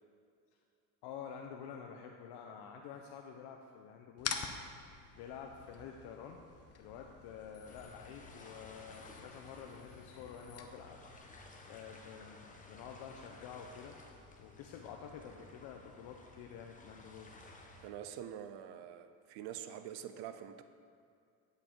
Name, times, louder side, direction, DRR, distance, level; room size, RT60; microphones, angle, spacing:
voice 1, 1.0-4.4 5.2-6.4 6.8-11.0 11.6-14.0 14.4-17.3, left 7 dB, 70° left, 2 dB, 0.8 m, -49 dB
sound 1, 4.2-11.2, left 6 dB, 35° left, 0.9 m, -47 dB
sound 2, 7.6-17.9, left 2 dB, 20° left, 1.2 m, -56 dB
voice 2, 17.8-20.6, right 10 dB, 65° right, 10 dB, 0.7 m, -45 dB
10.0 x 6.8 x 4.5 m, 2.4 s
supercardioid pair, 100°, 42 cm